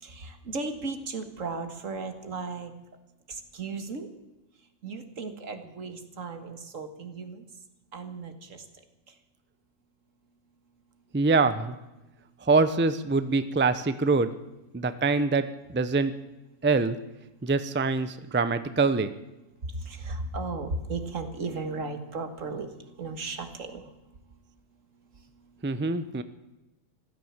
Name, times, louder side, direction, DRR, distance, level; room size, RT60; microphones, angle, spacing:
voice 1, 0.0-2.7 3.3-4.1 4.8-7.5 7.9-8.7 19.7-23.9, right 3 dB, 75° right, 7 dB, 2.0 m, -35 dB
voice 2, 11.1-11.8 12.4-14.3 14.7-16.1 16.6-17.0 17.4-19.1 25.6-26.2, right 3 dB, 10° right, 12 dB, 0.5 m, -24 dB
15.5 x 13.0 x 7.3 m, 1.0 s
omnidirectional pair, 1.4 m